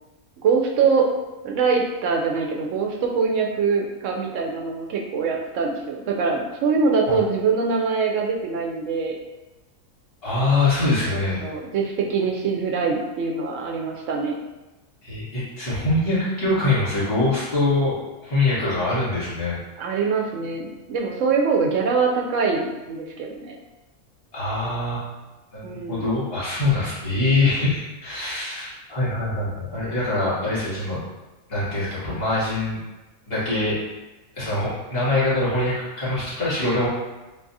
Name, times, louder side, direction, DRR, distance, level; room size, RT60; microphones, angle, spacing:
voice 1, 0.4-1.2 1.4-9.2 11.4-14.4 19.8-23.6 25.6-26.0, right 5 dB, 70° right, 0 dB, 0.8 m, -23 dB
voice 2, 10.2-11.4 15.0-19.6 24.3-25.0 25.5-31.0 31.5-32.8 33.3-33.7 34.3-36.9, left 2 dB, 45° left, -9 dB, 1.4 m, -23 dB
4.0 x 2.4 x 2.6 m, 1.1 s
omnidirectional pair, 1.5 m